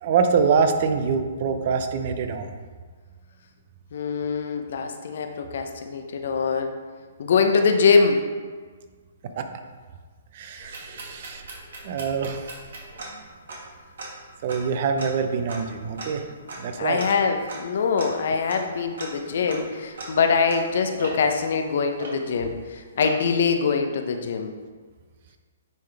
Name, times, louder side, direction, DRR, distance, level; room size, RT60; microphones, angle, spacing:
voice 1, 0.0-2.5 9.4-9.5 10.3-11.4 11.8-12.5 14.4-16.2 16.6-17.0, right 5 dB, 50° right, 7 dB, 0.7 m, -24 dB
voice 2, 3.9-6.7 7.2-8.2 10.6-10.7 16.8-24.5, left 5 dB, 65° left, 5 dB, 0.7 m, -23 dB
sound 1, 10.6-22.6 23.0-23.4, right 2 dB, 75° right, 1.8 m, -40 dB
9.1 x 3.8 x 3.4 m, 1.5 s
hypercardioid pair, 140°, 0 cm